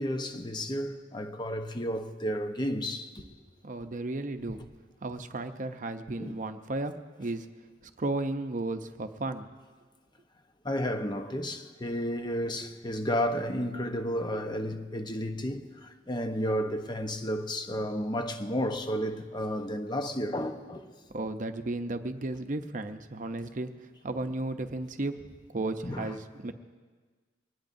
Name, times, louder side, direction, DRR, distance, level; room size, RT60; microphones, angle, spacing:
voice 1, 0.0-3.2 6.2-6.4 10.6-20.8 25.8-26.1, equal, 25° left, 0.9 m, -32 dB
voice 2, 3.6-4.6 5.0-7.5 8.0-9.5 21.1-23.7 24.0-26.5, right 2 dB, 45° right, 0.7 m, -34 dB
23.5 x 19.0 x 2.7 m
head